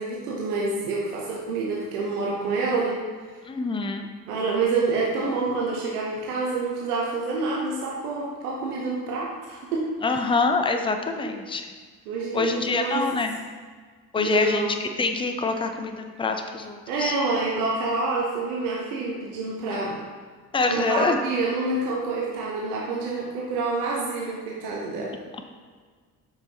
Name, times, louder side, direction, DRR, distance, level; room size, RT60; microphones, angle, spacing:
voice 1, 0.0-3.0 4.3-9.9 11.1-11.4 12.1-13.2 14.2-14.7 16.9-20.0 20.7-25.2, right 3 dB, 75° right, -3 dB, 1.0 m, -27 dB
voice 2, 3.4-4.1 10.0-11.7 12.3-13.4 14.1-17.1 20.5-21.2, left 4 dB, 10° left, 6 dB, 0.6 m, -25 dB
7.9 x 5.5 x 2.9 m, 1.5 s
figure-of-eight pair, 50°, 45 cm